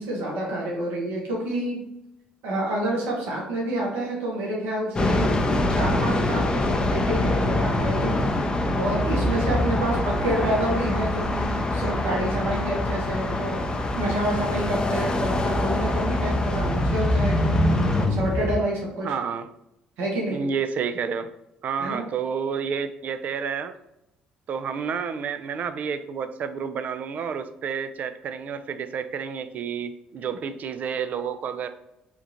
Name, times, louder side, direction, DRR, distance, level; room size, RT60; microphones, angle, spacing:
voice 1, 0.0-1.8 2.4-5.3 5.7-8.3 8.7-13.6 13.9-17.5 18.1-19.1 20.0-20.4 21.8-22.0, right 1 dB, 75° right, -2 dB, 1.0 m, -28 dB
sound 1, 5.0-18.1, left 2 dB, 25° left, 0.5 m, -26 dB
Motorcycle, 8.8-18.6, left 1 dB, 10° left, 1.0 m, -28 dB
voice 2, 19.0-19.5 20.3-21.3 21.6-23.7 24.5-31.7, right 6 dB, 55° right, 10 dB, 0.3 m, -30 dB
3.6 x 2.4 x 2.9 m, 0.86 s
supercardioid pair, 65°, 3 cm